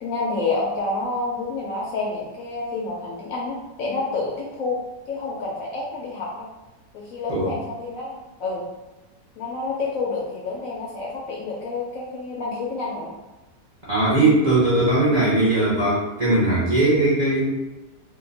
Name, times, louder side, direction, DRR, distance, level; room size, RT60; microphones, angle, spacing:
voice 1, 0.0-4.8 5.1-6.5 6.9-8.6 9.4-13.1, left 3 dB, 70° left, -4 dB, 0.8 m, -28 dB
voice 2, 13.9-17.4, right 2 dB, 45° right, -8 dB, 0.5 m, -19 dB
2.8 x 2.2 x 3.8 m, 1.1 s
omnidirectional pair, 1.8 m